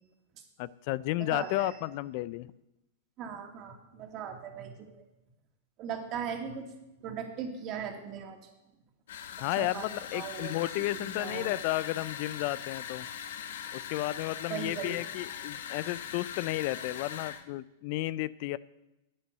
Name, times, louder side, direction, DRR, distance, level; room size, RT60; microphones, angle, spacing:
voice 1, 0.6-2.5 9.4-13.1 13.7-18.6, left 17 dB, 50° left, 20 dB, 0.4 m, -33 dB
voice 2, 1.2-1.7 3.2-4.7 5.8-6.7 7.0-8.4 9.6-10.5 10.9-11.5 14.5-15.0, right 7 dB, 40° right, 5 dB, 2.3 m, -38 dB
sound 1, 9.1-17.4, left 8 dB, 75° left, 1.1 m, -41 dB
10.0 x 9.5 x 7.9 m, 0.93 s
hypercardioid pair, 120°, 0 cm